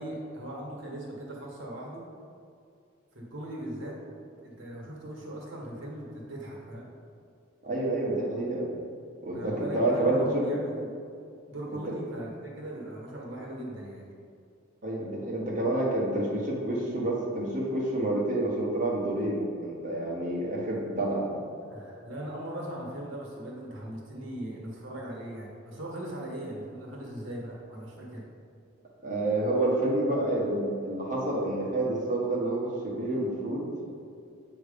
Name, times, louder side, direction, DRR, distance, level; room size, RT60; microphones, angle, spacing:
voice 1, 0.0-2.0 3.1-4.0 4.4-6.9 9.3-10.9 11.5-14.1 21.7-28.2, right 1 dB, 75° right, -3 dB, 1.5 m, -39 dB
voice 2, 7.6-8.6 9.2-10.4 14.8-21.2 29.0-33.6, right 1 dB, 40° right, -4 dB, 1.4 m, -28 dB
7.9 x 3.2 x 5.2 m, 2.4 s
head